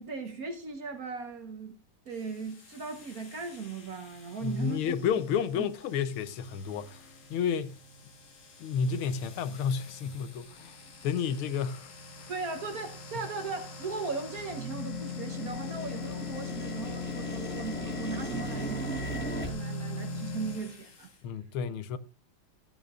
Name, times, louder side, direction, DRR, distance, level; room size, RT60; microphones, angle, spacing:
voice 1, 0.0-1.8 2.0-4.9 5.6-5.7 12.3-21.1, right 4 dB, 50° right, 1.3 m, -38 dB
sound 1, 2.1-21.2, left 2 dB, 60° left, 2.1 m, -42 dB
voice 2, 4.4-7.0 7.3-7.8 8.6-10.8 11.0-11.9 12.2-12.3 13.1-13.2 21.2-22.0, left 7 dB, 85° left, 1.6 m, -31 dB
sound 2, 8.7-8.8 9.4-9.5 10.1-10.4 10.9-11.0 11.2-11.8 12.1-14.4 14.7-19.5, left 1 dB, 5° left, 0.8 m, -40 dB
14.0 x 9.4 x 2.4 m
omnidirectional pair, 2.3 m